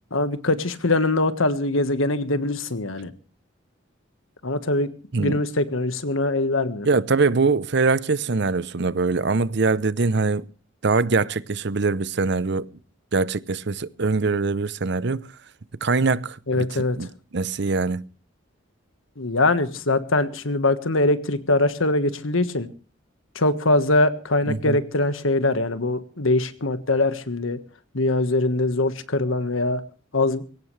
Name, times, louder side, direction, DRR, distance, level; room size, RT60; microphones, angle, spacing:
voice 1, 0.1-3.1 4.4-4.9 5.2-6.9 16.5-17.1 19.2-22.7 23.3-27.6 27.9-29.8 30.1-30.4, left 2 dB, 80° left, 1.5 m, -22 dB
voice 2, 6.8-10.5 10.8-12.7 13.1-15.2 15.8-16.7 17.0-18.1 24.5-24.8, right 4 dB, 55° right, 0.7 m, -23 dB
22.0 x 17.5 x 3.3 m
head